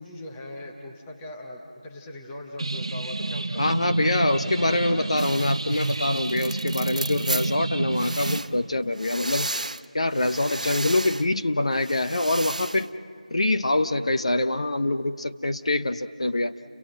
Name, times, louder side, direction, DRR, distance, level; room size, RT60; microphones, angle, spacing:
voice 1, 0.0-5.1, left 1 dB, 5° left, 0 dB, 0.7 m, -40 dB
sound 1, 2.6-8.4, right 2 dB, 40° right, 1.1 m, -29 dB
voice 2, 3.6-9.5 9.9-12.9 13.3-16.5, left 2 dB, 50° left, 9 dB, 0.8 m, -25 dB
sound 2, 5.2-7.5 7.9-8.5 8.9-9.8 10.1-11.3 11.7-12.9, right 2 dB, 70° right, 0.7 m, -34 dB
30.0 x 23.0 x 7.8 m, 2.2 s
figure-of-eight pair, 175°, 4 cm